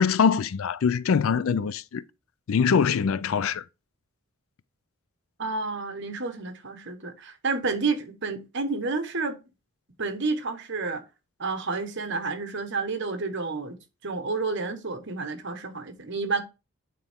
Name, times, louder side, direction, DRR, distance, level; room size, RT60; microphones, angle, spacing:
voice 1, 0.0-2.0 2.5-3.6, left 6 dB, 65° left, 0.4 m, -23 dB
voice 2, 5.4-9.4 10.0-11.0 11.4-13.7 14.0-16.4, right 4 dB, 55° right, 1.2 m, -30 dB
9.1 x 4.3 x 3.6 m
head